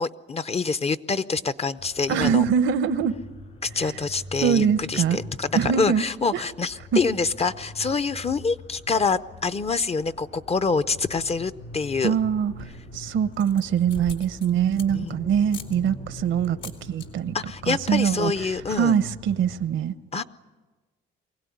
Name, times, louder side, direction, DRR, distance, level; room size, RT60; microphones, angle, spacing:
voice 1, 0.0-2.4 3.6-12.1 14.9-15.2 17.3-18.9 20.1-20.2, left 4 dB, 30° left, 14 dB, 0.7 m, -26 dB
sound 1, 1.8-19.7, left 2 dB, 90° left, 5.9 m, -43 dB
voice 2, 2.1-3.1 3.8-3.9 4.4-5.2 5.5-6.0 6.3-6.4 6.9-7.0 12.0-12.7 12.9-16.6 16.9-17.3 17.7-18.3 18.7-19.9, right 8 dB, 75° right, 14 dB, 0.9 m, -23 dB
sound 2, 12.4-12.9 13.3-15.1 15.5-15.8 16.4-17.1 17.4-17.7 17.9-18.0 18.3-18.7, left 5 dB, 75° left, 2.6 m, -42 dB
24.0 x 17.0 x 9.5 m, 1.3 s
cardioid pair, 90°, 20 cm